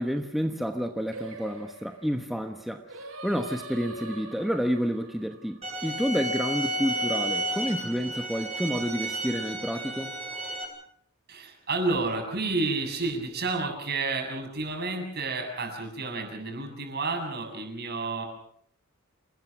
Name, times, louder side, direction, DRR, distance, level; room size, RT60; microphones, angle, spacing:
voice 1, 0.0-10.1, equal, ahead, 5 dB, 1.2 m, -30 dB
Singing, 1.1-6.4, right 2 dB, 85° right, 6.9 m, -44 dB
sound 1, 5.6-10.6, right 1 dB, 30° right, 7.6 m, -32 dB
voice 2, 11.3-18.3, right 3 dB, 50° right, 3 dB, 7.4 m, -30 dB
28.0 x 20.0 x 6.1 m, 0.65 s
head